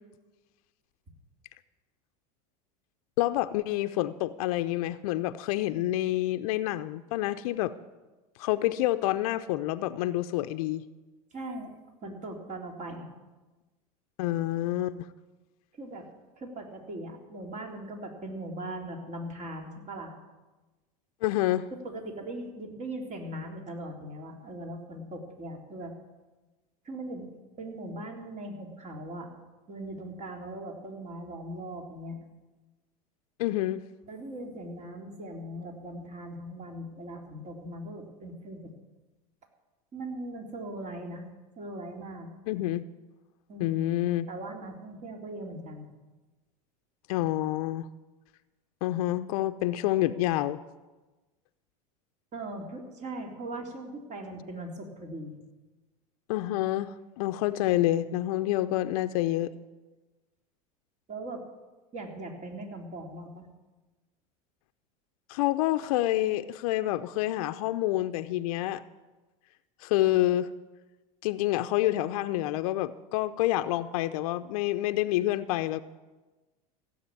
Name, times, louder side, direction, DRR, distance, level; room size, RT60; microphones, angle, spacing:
voice 1, 3.2-7.7 8.4-10.8 14.2-15.1 21.2-21.7 33.4-33.8 42.5-42.8 43.6-44.3 47.1-47.9 48.8-50.6 56.3-59.5 65.3-68.8 69.8-70.5 71.2-75.8, left 15 dB, 70° left, 10 dB, 0.6 m, -28 dB
voice 2, 11.3-11.7 12.0-13.1 15.7-16.1 16.4-20.1 21.8-25.9 26.9-29.3 29.7-32.2 34.1-38.7 39.9-41.3 41.6-42.3 43.5-43.8 44.3-45.9 52.3-55.4 61.1-61.4 61.9-63.5, right 1 dB, 40° right, 2 dB, 3.5 m, -40 dB
16.0 x 7.9 x 9.2 m, 1.2 s
hypercardioid pair, 95°, 19 cm